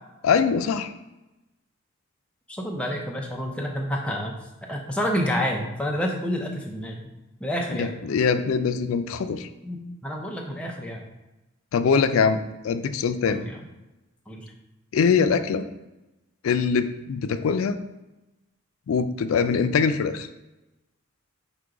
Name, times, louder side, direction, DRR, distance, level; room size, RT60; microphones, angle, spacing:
voice 1, 0.2-0.9 7.8-9.5 11.7-12.4 12.6-13.4 14.9-15.6 16.4-17.8 18.9-20.3, left 6 dB, 80° left, 10 dB, 0.3 m, -23 dB
voice 2, 2.5-4.4 4.6-7.1 7.4-7.9 9.6-11.0 13.2-13.7 14.3-14.5, equal, 5° left, 0 dB, 0.5 m, -29 dB
5.0 x 2.2 x 4.7 m, 1.0 s
head